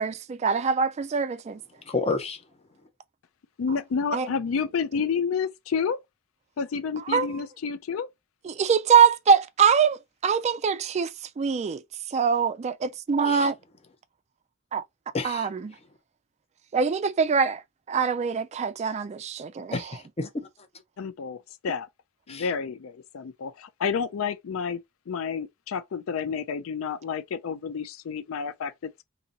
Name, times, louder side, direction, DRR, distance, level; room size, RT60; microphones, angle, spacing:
voice 1, 0.0-1.6 4.1-4.3 7.1-7.3 8.4-11.8 12.1-13.6 14.7-14.8 15.2-15.7 16.7-17.6 17.9-19.7, right 6 dB, 30° right, 0.3 m, -23 dB
voice 2, 1.8-2.4 13.2-13.5 15.1-15.5 19.7-20.3 22.3-22.5, left 3 dB, 30° left, 0.7 m, -30 dB
voice 3, 3.6-6.0 6.6-8.1 21.0-21.9 22.3-24.8 25.1-28.9, left 6 dB, 75° left, 0.4 m, -30 dB
2.8 x 2.7 x 3.9 m
head